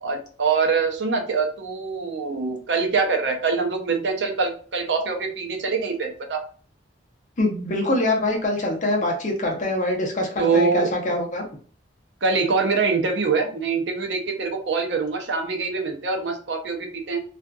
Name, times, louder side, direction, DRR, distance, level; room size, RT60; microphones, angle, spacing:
voice 1, 0.0-6.4 10.4-10.9 12.2-17.2, right 4 dB, 75° right, 4 dB, 0.6 m, -24 dB
voice 2, 7.4-11.4, left 1 dB, 45° left, 0 dB, 0.7 m, -24 dB
2.6 x 2.4 x 2.3 m, 0.41 s
head